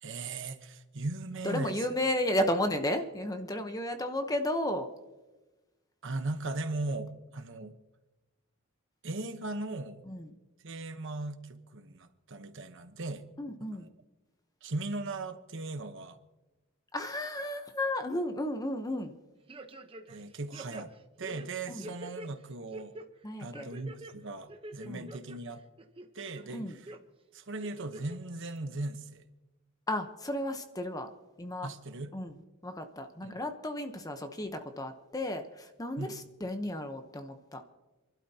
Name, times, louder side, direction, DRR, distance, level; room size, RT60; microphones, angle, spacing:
voice 1, 0.0-1.8 6.0-7.8 9.0-10.1 10.6-13.2 13.6-13.9 14.6-16.2 20.1-20.9 21.2-22.9 23.4-25.6 26.1-26.7 27.3-29.2 31.6-32.1 33.2-33.4 36.0-36.2, right 2 dB, 60° right, 8 dB, 1.1 m, -38 dB
voice 2, 1.4-4.9 10.1-10.3 13.4-13.9 16.9-19.2 21.7-21.9 23.2-23.7 24.9-25.1 26.5-26.8 29.9-31.1 31.4-31.7 32.1-32.3 32.6-37.6, left 1 dB, 15° left, 7 dB, 0.9 m, -33 dB
sound 1, 19.5-20.2 20.5-22.3 22.7-23.1 23.5-24.1 24.5-25.4 25.8-26.4 26.9-27.0 27.6-28.2 28.6-28.7, right 1 dB, 25° right, 0.9 m, -45 dB
28.0 x 12.0 x 2.9 m, 1.1 s
head